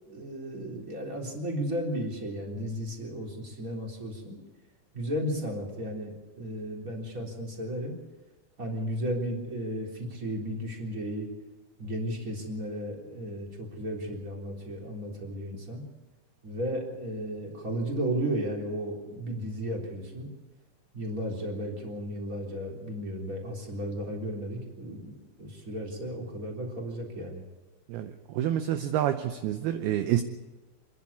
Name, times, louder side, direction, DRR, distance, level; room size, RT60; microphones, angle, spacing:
voice 1, 0.1-4.4 4.9-7.9 8.6-11.3 11.8-15.8 16.4-20.3 20.9-25.1 25.4-27.4, equal, 20° right, -1 dB, 3.6 m, -34 dB
voice 2, 27.9-30.2, right 11 dB, 75° right, 8 dB, 2.5 m, -28 dB
28.0 x 11.0 x 8.5 m, 1.2 s
omnidirectional pair, 5.0 m